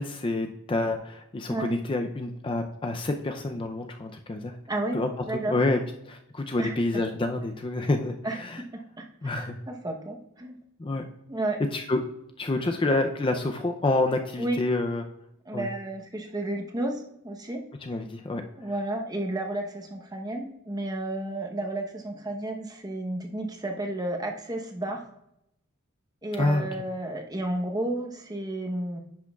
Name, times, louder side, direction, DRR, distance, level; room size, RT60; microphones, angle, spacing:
voice 1, 0.0-4.5 4.9-5.8 6.1-8.6 9.2-9.6 10.8-11.1 11.7-12.0 12.4-15.0 15.5-15.7 17.8-18.4 26.4-26.7, left 2 dB, 25° left, 5 dB, 0.4 m, -28 dB
voice 2, 4.7-5.0 5.3-5.6 6.6-6.8 8.2-8.7 9.0-10.6 11.3-11.6 14.4-14.6 15.5-17.6 18.6-25.0 26.2-29.0, right 1 dB, 20° right, 3 dB, 0.9 m, -32 dB
10.5 x 6.1 x 2.3 m, 0.80 s
head